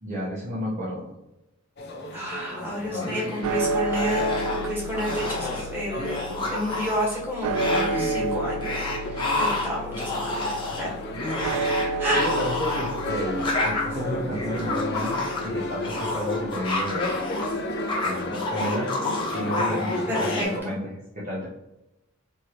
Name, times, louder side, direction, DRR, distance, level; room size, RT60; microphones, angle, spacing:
voice 1, 0.0-1.1 2.9-3.1 12.2-17.2 18.0-18.9 19.3-21.5, equal, 35° right, -6 dB, 0.8 m, -32 dB
sound 1, 1.8-7.4 7.9-20.6, left 1 dB, 50° left, 0.6 m, -34 dB
voice 2, 2.1-10.3 10.8-10.9 11.4-12.3 20.1-20.7, equal, 10° right, -6 dB, 1.4 m, -30 dB
sound 2, 3.0-3.6 3.9-4.7 4.9-5.6 6.0-7.2 7.5-8.2 8.6-17.5 17.7-20.4, left 2 dB, 20° left, 1.0 m, -29 dB
sound 3, 3.4-17.7, right 3 dB, 80° right, 0.3 m, -32 dB
4.4 x 3.1 x 2.9 m, 0.93 s
head